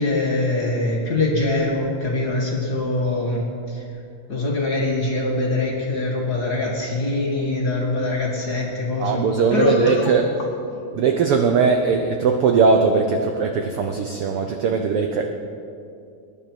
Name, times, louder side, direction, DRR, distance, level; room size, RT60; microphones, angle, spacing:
voice 1, 0.0-3.8 4.3-9.2 9.5-10.1, left 2 dB, 40° left, -2 dB, 1.5 m, -23 dB
voice 2, 9.0-10.3 10.9-15.3, right 5 dB, 85° right, 4 dB, 1.2 m, -20 dB
21.5 x 10.5 x 4.5 m, 2.5 s
omnidirectional pair, 3.6 m